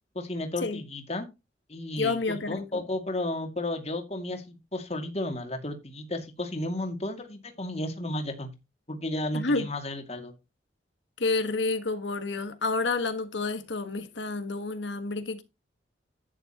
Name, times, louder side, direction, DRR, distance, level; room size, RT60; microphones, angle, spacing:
voice 1, 0.1-1.3 1.7-8.5 8.9-10.3, left 1 dB, 35° left, 2.3 m, -33 dB
voice 2, 2.0-2.8 9.3-9.7 11.2-15.4, left 3 dB, 80° left, 1.5 m, -29 dB
11.0 x 10.0 x 2.9 m
head